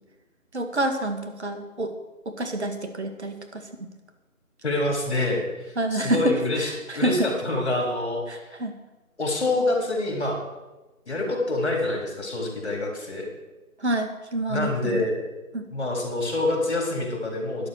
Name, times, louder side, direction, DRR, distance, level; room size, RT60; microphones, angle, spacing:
voice 1, 0.5-1.9 2.3-3.9 5.8-7.3 8.3-8.7 13.8-15.1 15.5-15.7, right 1 dB, 50° right, 6 dB, 2.2 m, -28 dB
voice 2, 4.6-8.5 9.2-10.4 11.1-13.3 14.5-15.2 15.7-17.7, left 2 dB, 50° left, 1 dB, 4.2 m, -26 dB
12.5 x 10.5 x 6.7 m, 1.1 s
figure-of-eight pair, 175°, 42 cm